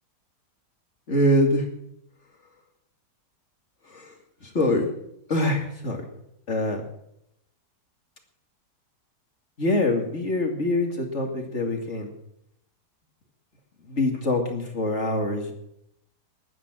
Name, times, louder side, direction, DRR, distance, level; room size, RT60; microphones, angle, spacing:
voice 1, 1.1-1.7 3.9-4.1 4.4-4.9 5.3-6.0 6.5-6.8 9.6-12.1 13.9-15.5, left 1 dB, 45° left, 3 dB, 2.7 m, -24 dB
20.5 x 9.5 x 6.2 m, 0.76 s
omnidirectional pair, 1.7 m